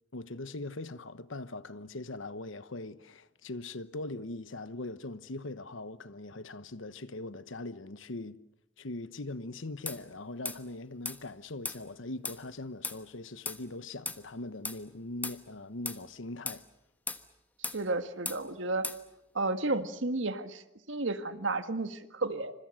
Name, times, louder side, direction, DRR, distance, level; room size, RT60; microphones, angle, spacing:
voice 1, 0.1-8.4 8.8-16.6, left 2 dB, 85° left, 1.1 m, -41 dB
sound 1, 9.9-10.0 10.5-10.6 11.1-11.2 11.6-11.8 12.2-12.4 12.8-13.0 13.5-13.6 14.1-14.2 14.6-14.8 15.2-15.4 15.9-16.0 16.5-16.6 17.1-17.2 17.6-17.8 18.3-18.4 18.8-19.0, left 3 dB, 10° left, 1.1 m, -36 dB
voice 2, 17.7-18.9 19.3-22.5, right 2 dB, 75° right, 1.8 m, -32 dB
28.0 x 26.0 x 6.5 m
head